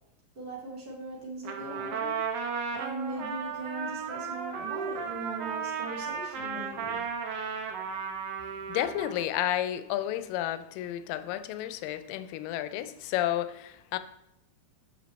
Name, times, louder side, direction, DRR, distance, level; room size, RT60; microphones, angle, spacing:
voice 1, 0.3-2.2 2.7-7.0, right 2 dB, 45° right, -4 dB, 0.7 m, -39 dB
Trumpet, 1.4-9.3, right 6 dB, 75° right, 1.4 m, -35 dB
voice 2, 8.7-14.0, left 12 dB, 80° left, 12 dB, 2.2 m, -31 dB
7.6 x 6.7 x 4.1 m, 0.82 s
omnidirectional pair, 4.0 m